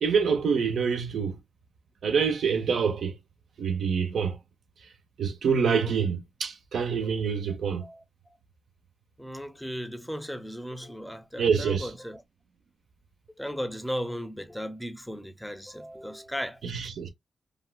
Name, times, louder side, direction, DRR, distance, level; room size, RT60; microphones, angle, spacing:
voice 1, 0.0-1.4 2.0-3.2 3.6-4.4 5.2-7.9 11.4-11.9 16.6-17.1, right 6 dB, 80° right, 0.9 m, -26 dB
voice 2, 7.8-8.3 9.2-12.2 13.4-16.6, equal, 5° left, 0.6 m, -36 dB
3.4 x 2.4 x 2.3 m
cardioid pair, 65°, 0 cm